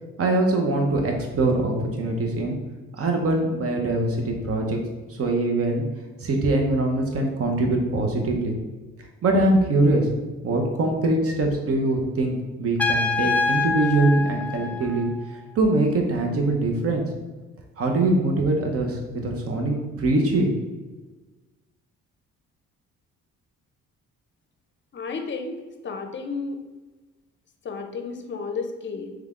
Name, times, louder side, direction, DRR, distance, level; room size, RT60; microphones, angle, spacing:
voice 1, 0.2-2.6 3.0-4.8 5.1-5.8 6.2-8.5 9.2-10.1 10.4-15.1 15.5-17.0 17.8-20.5, right 2 dB, 50° right, 2 dB, 0.9 m, -23 dB
Trumpet, 12.8-15.4, left 4 dB, 5° left, 0.3 m, -26 dB
voice 2, 24.9-26.6 27.6-29.1, left 4 dB, 40° left, 5 dB, 0.6 m, -32 dB
3.5 x 3.3 x 3.6 m, 1.2 s
cardioid pair, 90°, 30 cm